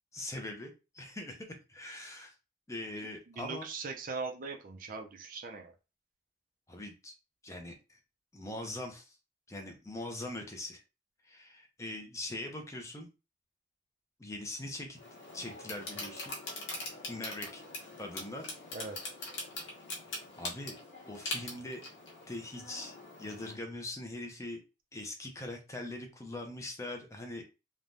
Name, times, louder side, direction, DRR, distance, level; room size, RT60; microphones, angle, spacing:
voice 1, 0.1-2.3 2.7-3.7 6.7-7.1 7.4-8.0 8.3-9.2 9.5-10.8 11.2-13.1 14.2-15.0 15.3-16.4 17.1-17.6 18.0-18.4 20.4-20.8 21.0-21.8 22.3-24.6 24.9-27.4, left 2 dB, 15° left, 3 dB, 0.5 m, -42 dB
voice 2, 3.3-5.7 18.7-19.0, right 4 dB, 45° right, 3 dB, 0.4 m, -40 dB
sound 1, 15.0-23.6, left 2 dB, 75° left, 1.0 m, -42 dB
3.2 x 2.2 x 2.5 m, 0.29 s
head